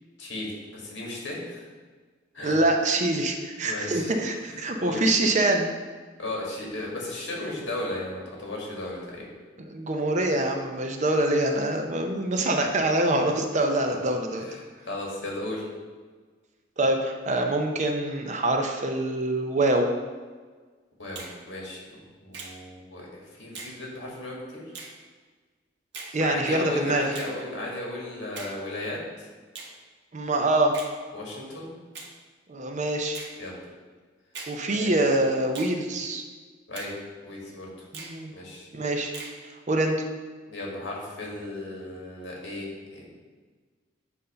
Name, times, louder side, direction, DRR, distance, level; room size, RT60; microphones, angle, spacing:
voice 1, 0.2-1.7 2.3-2.6 3.6-4.1 4.5-5.0 6.2-9.3 13.9-14.0 14.3-15.7 21.0-24.6 26.2-29.3 31.1-31.7 33.4-33.6 34.7-34.9 36.7-36.9 37.2-37.7 38.3-38.7 40.5-43.1, left 1 dB, 65° left, -3 dB, 1.7 m, -35 dB
voice 2, 2.4-5.7 9.6-14.4 16.8-19.9 26.1-27.0 30.1-30.7 32.5-33.2 34.5-36.2 37.9-38.3 38.7-39.1 39.4-40.0, right 1 dB, 40° right, 4 dB, 0.6 m, -25 dB
Finger snapping, 21.2-21.4 22.3-22.6 23.6-23.8 24.7-25.0 25.9-26.2 27.1-27.4 28.4-28.6 29.6-29.8 30.7-31.0 31.9-32.1 33.1-33.4 34.3-34.6 35.5-35.8 36.8-37.0 37.9-38.2 39.1-39.4, right 4 dB, 60° right, 1.0 m, -40 dB
7.9 x 2.7 x 5.4 m, 1.4 s
head